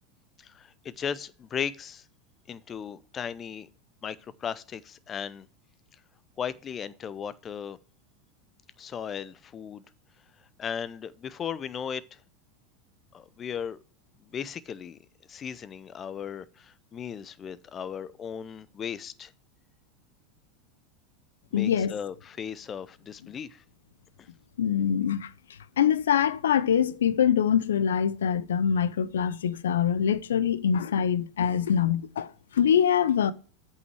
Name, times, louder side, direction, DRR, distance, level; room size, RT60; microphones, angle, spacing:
voice 1, 0.4-2.0 2.5-3.7 4.0-5.5 6.4-7.8 8.8-9.8 10.6-12.0 13.1-13.8 14.2-15.0 15.3-19.3 21.5-23.6, left 7 dB, 30° left, 0.6 m, -36 dB
voice 2, 21.5-21.9 24.6-25.3 25.8-33.3, left 8 dB, 85° left, 0.5 m, -24 dB
8.1 x 5.6 x 4.6 m
hypercardioid pair, 95°, 0 cm